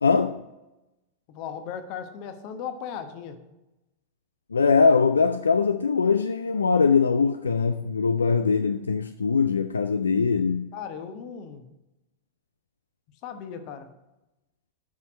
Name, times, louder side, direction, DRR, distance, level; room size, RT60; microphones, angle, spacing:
voice 1, 0.0-0.4 4.5-10.7, left 5 dB, 75° left, 0.3 m, -22 dB
voice 2, 1.3-3.4 10.7-11.7 13.2-13.9, left 7 dB, 45° left, 1.0 m, -37 dB
7.4 x 5.9 x 6.2 m
figure-of-eight pair, 90°, 0 cm